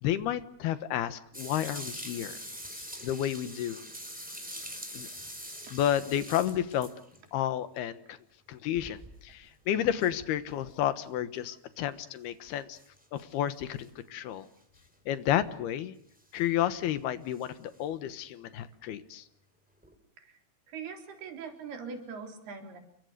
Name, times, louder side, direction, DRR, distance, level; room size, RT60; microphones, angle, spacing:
voice 1, 0.0-2.4 3.0-3.8 4.9-5.1 5.7-6.9 7.3-8.2 8.5-12.8 13.1-14.5 15.1-15.9 16.3-19.2, left 11 dB, 80° left, 12 dB, 3.2 m, -31 dB
sound 1, 1.3-7.3 8.7-9.4 10.0-10.1 11.3-11.4 12.7-13.3 13.8-13.9 14.8-14.9 16.2-16.4 17.3-17.5 19.8-19.9, equal, ahead, 4.3 m, -43 dB
voice 2, 20.7-22.8, right 5 dB, 75° right, 5 dB, 5.6 m, -42 dB
29.5 x 23.0 x 6.7 m, 0.69 s
omnidirectional pair, 4.5 m